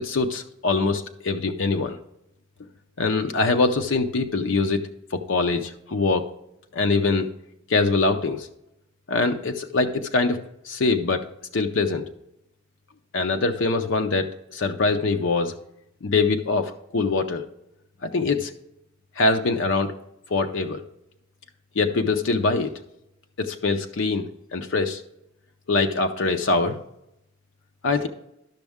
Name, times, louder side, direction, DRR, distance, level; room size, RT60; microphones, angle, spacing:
voice 1, 0.0-2.0 3.0-4.8 5.1-6.2 6.7-7.3 7.7-8.5 9.1-10.4 10.7-11.2 11.5-12.1 13.1-15.5 16.0-17.4 18.0-18.5 19.2-19.9 20.3-20.8 21.8-22.7 23.4-25.0 25.7-26.8 27.8-28.1, left 3 dB, 80° left, 5 dB, 0.6 m, -23 dB
12.0 x 6.2 x 3.5 m, 0.83 s
head